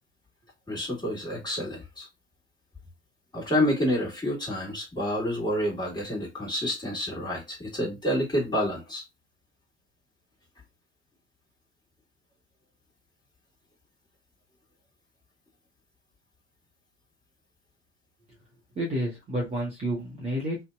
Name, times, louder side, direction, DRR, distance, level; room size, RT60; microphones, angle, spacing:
voice 1, 0.7-2.1 3.3-9.0, equal, 10° left, 1.4 m, -28 dB
voice 2, 18.8-20.6, equal, 20° right, 0.8 m, -30 dB
2.6 x 2.1 x 2.2 m
figure-of-eight pair, 75°, 36 cm